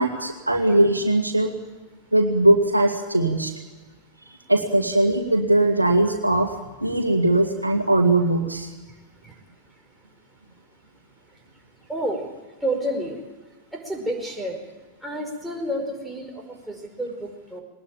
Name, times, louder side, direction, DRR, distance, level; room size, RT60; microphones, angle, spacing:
voice 1, 0.0-1.5 2.1-3.5 4.5-6.5 6.8-8.7, right 1 dB, 85° right, 4 dB, 2.1 m, -20 dB
voice 2, 11.9-12.2 12.6-13.2 13.7-14.6 15.0-17.6, right 1 dB, 5° right, 0 dB, 4.9 m, -29 dB
21.0 x 19.5 x 9.0 m, 1.2 s
figure-of-eight pair, 90°, 0 cm